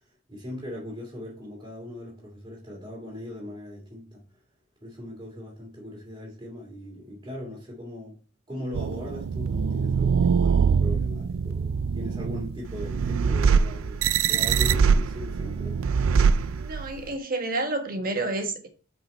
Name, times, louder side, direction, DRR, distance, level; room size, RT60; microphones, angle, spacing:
voice 1, 0.3-4.2 4.8-8.2 8.5-14.0 14.3-15.8, left 1 dB, 20° right, 2.6 m, -39 dB
sound 1, 8.7-17.1, right 6 dB, 75° right, 0.4 m, -23 dB
voice 2, 16.6-18.7, right 2 dB, 45° right, 1.3 m, -29 dB
6.1 x 5.0 x 4.4 m
head